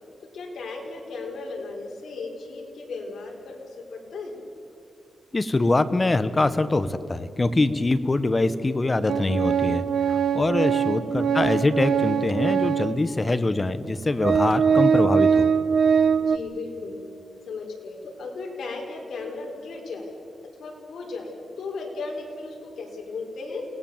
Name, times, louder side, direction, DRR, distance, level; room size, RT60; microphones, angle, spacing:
voice 1, 0.3-4.4 10.3-10.8 16.2-17.0 17.5-20.1 20.6-23.7, left 3 dB, 75° left, 0 dB, 4.9 m, -36 dB
voice 2, 5.3-15.5, left 2 dB, 25° left, 13 dB, 1.1 m, -24 dB
Organ, 9.1-13.0 13.7-13.8 14.2-16.4, right 6 dB, 70° right, 0.9 m, -22 dB
28.5 x 19.5 x 7.3 m, 2.7 s
wide cardioid pair, 115°, 0 cm